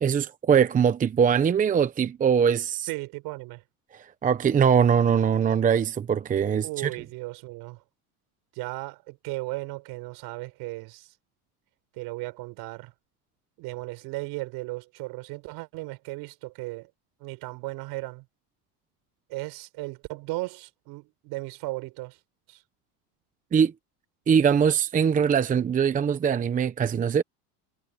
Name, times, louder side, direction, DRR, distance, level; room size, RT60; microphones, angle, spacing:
voice 1, 0.0-2.9 3.9-6.9 23.5-23.7 24.3-27.2, right 7 dB, 20° right, 0.8 m, -22 dB
voice 2, 2.9-3.6 6.6-7.8 8.5-11.1 12.0-12.9 13.6-16.9 17.2-18.2 19.3-22.2 22.5-22.6, right 22 dB, 55° right, 4.5 m, -36 dB
supercardioid pair, 125°, 44 cm